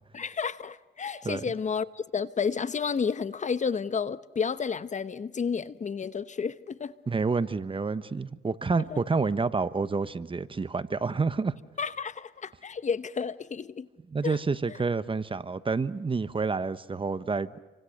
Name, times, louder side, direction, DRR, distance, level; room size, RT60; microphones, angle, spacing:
voice 1, 0.1-6.9 8.8-9.0 11.8-13.9 14.2-14.4, left 6 dB, 40° left, 1.0 m, -31 dB
voice 2, 7.1-11.5 14.1-17.5, right 4 dB, 25° right, 1.2 m, -28 dB
29.5 x 25.0 x 6.7 m
cardioid pair, 90°, 20 cm